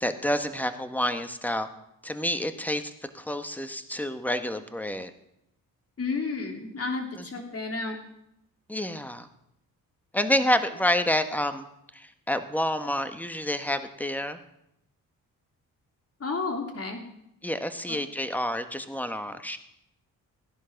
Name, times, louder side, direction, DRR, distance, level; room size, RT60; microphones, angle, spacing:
voice 1, 0.0-1.7 2.0-2.8 3.1-5.1 7.1-7.3 8.7-9.3 10.1-11.7 11.9-14.4 17.4-19.6, left 1 dB, 5° left, 9 dB, 1.4 m, -28 dB
voice 2, 6.0-8.0 16.2-17.0 17.9-18.0, left 4 dB, 40° left, 3 dB, 3.3 m, -31 dB
16.5 x 10.5 x 6.0 m, 0.81 s
cardioid pair, 75°, 35 cm